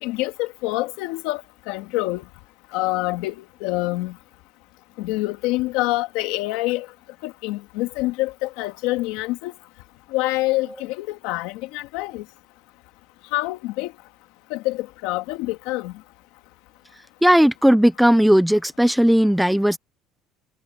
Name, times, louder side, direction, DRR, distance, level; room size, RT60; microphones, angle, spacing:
voice 1, 0.0-1.4 1.7-2.2 2.7-4.1 5.0-6.9 7.2-9.5 10.1-12.2 13.3-13.9 14.5-15.9, left 19 dB, 80° left, 1.9 m, -26 dB
voice 2, 17.2-19.8, equal, ahead, 0.4 m, -16 dB
cardioid pair, 165°, 0 cm